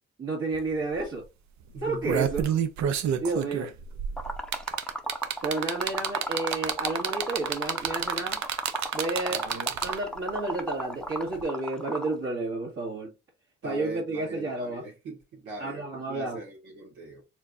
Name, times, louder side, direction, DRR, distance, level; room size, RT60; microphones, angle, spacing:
voice 1, 0.2-1.3 1.8-2.4 3.2-3.7 5.4-8.4 8.9-9.5 9.8-13.1 13.6-14.8 15.6-16.4, right 2 dB, 45° right, 1.8 m, -31 dB
sound 1, 0.5-0.6 0.9-1.2 1.8-10.2 11.4-11.5, right 9 dB, 65° right, 0.7 m, -29 dB
voice 2, 1.7-2.1 9.3-9.7 13.6-17.2, right 2 dB, 90° right, 2.0 m, -41 dB
Liquid, 4.2-12.1, equal, 5° left, 0.7 m, -35 dB
4.5 x 3.6 x 2.6 m
cardioid pair, 90°, 30 cm